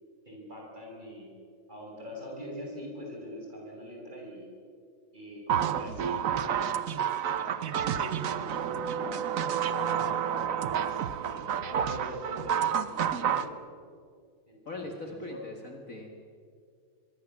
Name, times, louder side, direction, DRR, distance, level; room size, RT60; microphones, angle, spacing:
voice 1, 0.3-1.3 1.7-4.5 5.1-6.7 7.2-9.1 9.7-13.5 14.5-15.5, equal, 20° right, -1 dB, 7.3 m, -43 dB
sound 1, 5.5-13.5, right 8 dB, 55° right, 1.0 m, -30 dB
voice 2, 14.7-16.2, left 2 dB, 40° left, 2 dB, 2.3 m, -41 dB
25.0 x 23.5 x 7.4 m, 2.2 s
omnidirectional pair, 2.2 m